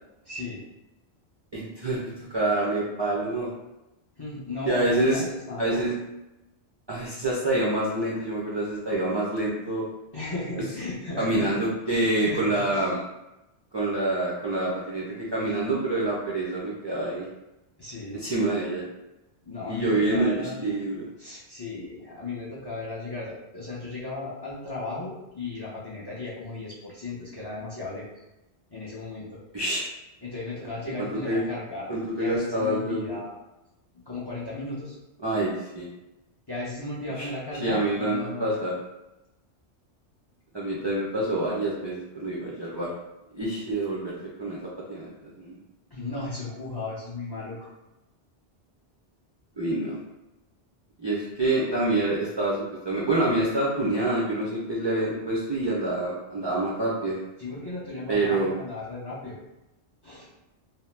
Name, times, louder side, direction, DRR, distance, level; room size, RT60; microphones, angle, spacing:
voice 1, 0.2-0.6 4.2-5.8 10.1-11.5 11.9-13.0 17.8-18.2 19.5-20.6 21.2-28.1 28.7-29.4 30.2-31.9 32.2-33.4 34.1-35.0 36.5-38.6 40.8-40.9 45.9-47.7 57.4-59.4 60.0-60.3, left 3 dB, 30° left, -6 dB, 0.4 m, -35 dB
voice 2, 1.5-3.5 4.6-5.2 5.6-5.9 6.9-9.8 11.2-12.9 13.7-17.3 18.1-18.8 19.7-21.1 29.5-29.8 31.0-31.4 31.9-33.2 35.2-35.9 37.2-37.3 37.6-38.7 40.5-42.9 43.3-45.5 49.6-50.0 51.0-57.2 58.1-58.5, right 2 dB, 45° right, -6 dB, 0.3 m, -27 dB
2.8 x 2.0 x 3.2 m, 0.95 s
omnidirectional pair, 1.2 m